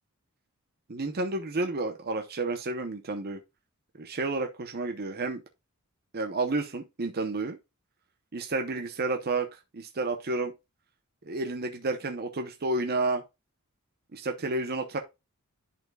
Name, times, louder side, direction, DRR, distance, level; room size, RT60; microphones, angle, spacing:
voice 1, 0.9-3.4 3.9-5.4 6.1-7.6 8.3-10.5 11.2-13.2 14.1-15.0, right 2 dB, 45° right, 0.9 m, -31 dB
10.5 x 4.4 x 2.3 m
head